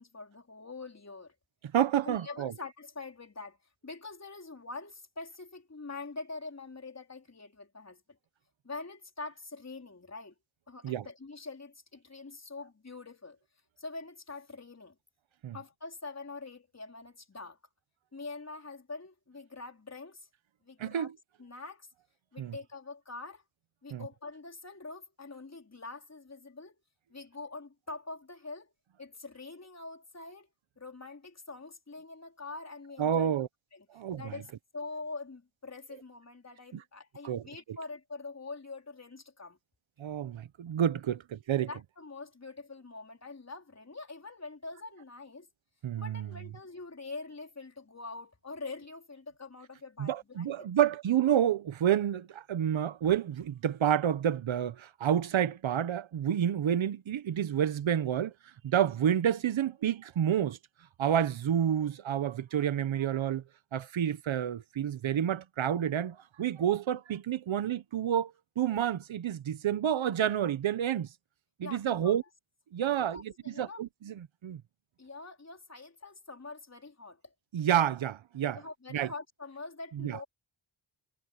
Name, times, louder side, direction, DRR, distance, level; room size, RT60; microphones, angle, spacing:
voice 1, 0.0-1.3 2.0-3.6 3.8-8.2 8.6-10.3 10.7-13.4 13.8-15.0 15.5-17.6 18.1-20.3 20.6-21.1 21.4-21.9 22.3-23.4 23.8-26.8 27.1-28.7 29.0-30.5 30.8-33.3 33.7-33.9 34.2-39.6 41.7-45.5 46.0-50.7 71.6-72.2 73.1-73.8 75.0-77.3 78.5-80.2, left 3 dB, 35° left, 4.2 m, -44 dB
voice 2, 1.7-2.5 10.8-11.1 15.4-15.6 20.8-21.1 22.4-22.5 23.9-24.1 33.0-33.5 33.9-34.3 37.2-37.4 40.0-41.7 45.8-46.3 50.0-58.3 58.6-60.6 61.0-63.4 63.7-71.1 71.6-72.2 72.7-74.6 77.5-78.6 78.9-79.1 80.0-80.2, right 9 dB, 75° right, 1.1 m, -29 dB
cardioid pair, 70°, 47 cm